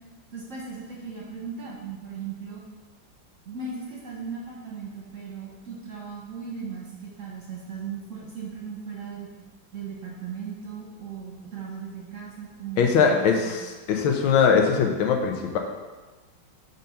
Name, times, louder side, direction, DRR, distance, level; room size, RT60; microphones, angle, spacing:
voice 1, 0.3-2.6 3.4-9.3 9.7-13.5, right 5 dB, 45° right, -3 dB, 1.2 m, -37 dB
voice 2, 12.8-15.6, left 6 dB, 85° left, 2 dB, 1.6 m, -21 dB
5.3 x 3.9 x 5.6 m, 1.3 s
omnidirectional pair, 2.2 m